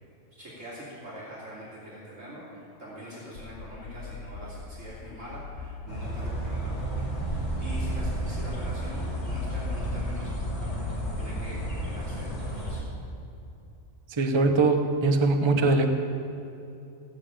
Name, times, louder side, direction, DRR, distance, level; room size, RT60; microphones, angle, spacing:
voice 1, 0.3-10.3 10.6-10.9 11.2-12.8, equal, 75° right, -7 dB, 3.4 m, -43 dB
sound 1, 3.4-6.6 7.3-10.6, left 4 dB, 80° left, 1.1 m, -42 dB
sound 2, 5.9-12.8, equal, 25° left, 4.1 m, -31 dB
voice 2, 14.1-15.9, right 3 dB, 25° right, 5 dB, 0.8 m, -22 dB
16.0 x 7.0 x 8.9 m, 2.8 s
omnidirectional pair, 1.3 m